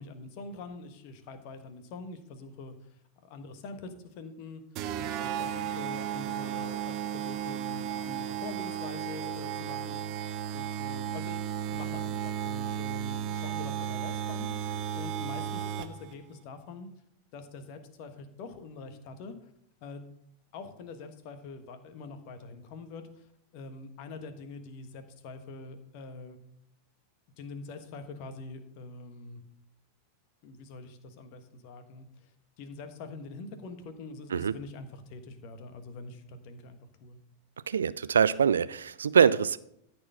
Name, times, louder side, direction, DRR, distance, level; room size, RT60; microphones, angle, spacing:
voice 1, 0.0-3.0 3.2-4.6 4.9-10.1 10.5-11.4 11.7-16.9 17.3-19.5 19.8-20.0 20.5-23.3 23.5-26.4 27.4-29.4 30.4-32.3 32.6-37.2, left 3 dB, 45° left, 8 dB, 1.3 m, -44 dB
sound 1, 4.8-16.1, right 9 dB, 40° right, 0.7 m, -34 dB
voice 2, 37.7-39.6, right 7 dB, 70° right, 16 dB, 0.3 m, -24 dB
13.5 x 4.6 x 5.6 m, 0.75 s
figure-of-eight pair, 90°, 0 cm